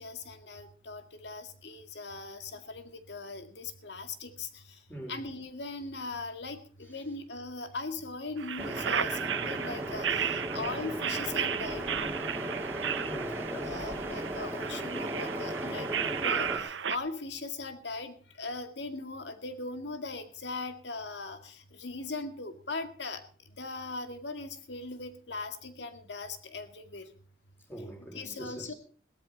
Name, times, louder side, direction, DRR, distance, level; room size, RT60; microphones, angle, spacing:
voice 1, 0.0-4.8 5.1-11.9 13.7-23.2 23.6-27.1 28.1-28.7, left 3 dB, 75° left, 2.1 m, -39 dB
sound 1, 8.4-17.0, right 8 dB, 90° right, 0.9 m, -34 dB
sound 2, 8.6-16.6, right 1 dB, 15° right, 2.4 m, -36 dB
voice 2, 13.0-13.9 27.7-28.7, equal, 10° left, 4.4 m, -43 dB
17.5 x 13.5 x 4.2 m
head